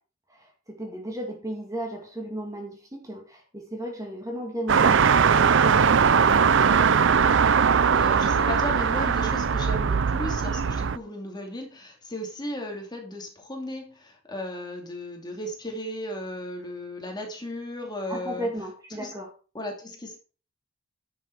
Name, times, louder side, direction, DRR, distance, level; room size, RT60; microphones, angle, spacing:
voice 1, 0.3-6.7 18.1-19.3, right 1 dB, 15° right, 2.0 m, -35 dB
sound 1, 4.7-11.0, right 6 dB, 60° right, 0.5 m, -20 dB
voice 2, 7.9-18.5 19.0-19.1 19.5-20.2, left 1 dB, 20° left, 2.5 m, -35 dB
10.5 x 7.0 x 4.6 m
head